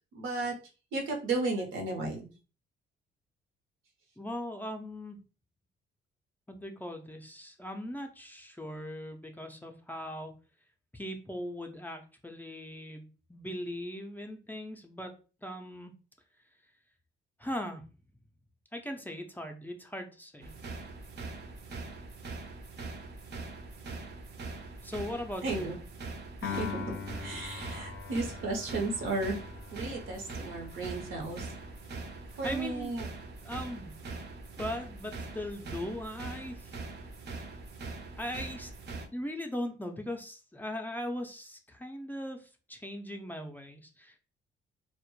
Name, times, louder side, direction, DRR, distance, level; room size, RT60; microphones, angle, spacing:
voice 1, 0.1-0.5 0.9-2.2 25.4-25.8 26.4-29.4 29.7-31.5 32.4-33.0, right 3 dB, 85° right, 2 dB, 0.8 m, -34 dB
voice 2, 4.2-5.2 6.5-10.3 10.9-15.1 15.4-15.9 17.4-17.8 18.7-20.5 24.8-25.7 32.2-33.0 33.4-34.2 34.6-36.8 38.2-38.7 39.1-44.2, left 1 dB, 10° left, 4 dB, 0.4 m, -39 dB
sound 1, 20.4-39.1, right 3 dB, 55° right, 0.5 m, -42 dB
Piano, 26.4-32.8, left 7 dB, 70° left, 0.4 m, -43 dB
2.1 x 2.0 x 3.0 m, 0.35 s
cardioid pair, 90°, 20 cm